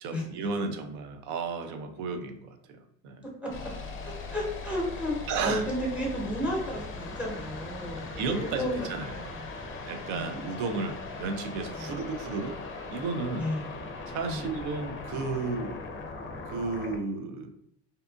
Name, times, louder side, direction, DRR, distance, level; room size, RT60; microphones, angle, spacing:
voice 1, 0.0-3.2 5.3-5.7 8.2-9.2 9.8-12.6 12.9-13.5 14.1-15.8 16.5-17.5, right 4 dB, 65° right, 7 dB, 0.5 m, -33 dB
sound 1, 3.5-17.0, left 3 dB, 40° left, 0.5 m, -39 dB
voice 2, 4.0-9.4 10.1-10.4 11.8-12.0 13.4-13.7 14.3-14.5, equal, 5° right, -2 dB, 1.0 m, -33 dB
2.7 x 2.4 x 2.3 m, 0.77 s
supercardioid pair, 105°, 32 cm